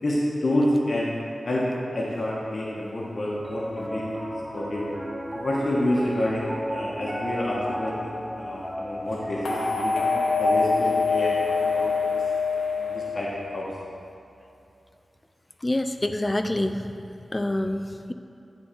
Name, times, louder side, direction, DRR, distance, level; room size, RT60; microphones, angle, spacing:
voice 1, 0.0-1.1 1.4-4.8 5.3-12.2 12.8-13.6, left 1 dB, 60° left, -5 dB, 1.1 m, -28 dB
Piano, 3.4-13.7, equal, 10° right, 1.0 m, -36 dB
sound 1, 9.4-13.7, left 4 dB, 85° left, 0.8 m, -24 dB
voice 2, 15.6-16.8 17.3-18.1, left 1 dB, 25° left, 8 dB, 0.4 m, -26 dB
9.4 x 3.9 x 4.5 m, 2.7 s
cardioid pair, 50°, 0 cm